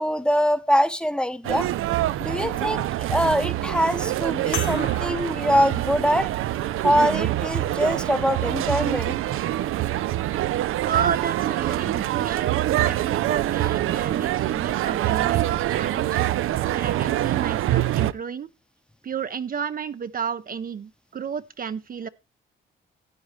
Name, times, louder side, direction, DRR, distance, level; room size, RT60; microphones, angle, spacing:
voice 1, 0.0-1.7 2.2-6.3 6.8-9.1, equal, 5° left, 0.8 m, -23 dB
sound 1, 1.4-18.1, right 14 dB, 90° right, 0.5 m, -25 dB
sound 2, 4.5-9.3 10.1-10.2 12.4-12.5, left 6 dB, 75° left, 3.6 m, -40 dB
voice 2, 10.8-16.2 16.7-18.5 19.0-22.1, right 7 dB, 45° right, 0.6 m, -31 dB
12.5 x 9.4 x 3.1 m
cardioid pair, 85°, 21 cm